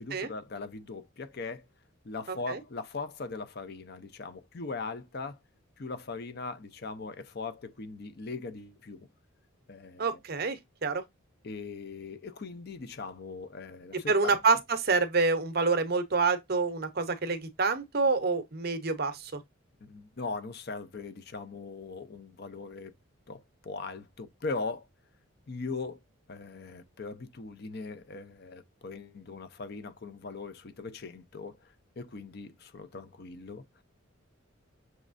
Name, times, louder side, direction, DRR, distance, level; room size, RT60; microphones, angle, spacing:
voice 1, 0.0-1.6 2.0-5.4 5.8-9.1 9.7-10.2 11.4-14.4 19.8-22.9 23.3-24.9 25.5-26.0 26.3-33.7, left 3 dB, 50° left, 0.6 m, -40 dB
voice 2, 2.3-2.6 10.0-11.0 14.1-19.4, right 4 dB, 45° right, 0.7 m, -27 dB
6.2 x 3.2 x 2.5 m
head